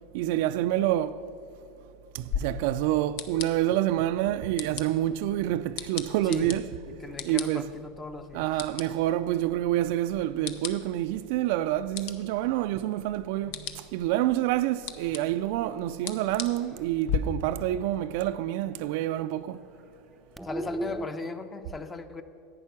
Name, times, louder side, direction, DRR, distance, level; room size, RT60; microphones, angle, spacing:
voice 1, 0.1-1.2 2.1-6.7 7.2-7.7 8.3-19.6, right 13 dB, 65° right, 0.4 m, -27 dB
sound 1, 2.3-17.2, left 8 dB, 65° left, 0.7 m, -39 dB
voice 2, 6.2-6.6 6.9-8.5 20.4-22.2, left 3 dB, 20° left, 0.8 m, -37 dB
sound 2, 15.0-18.4 18.7-18.8 19.1-19.3 19.5-21.1, right 1 dB, 5° right, 0.4 m, -41 dB
11.0 x 8.5 x 5.9 m
hypercardioid pair, 100°, 0 cm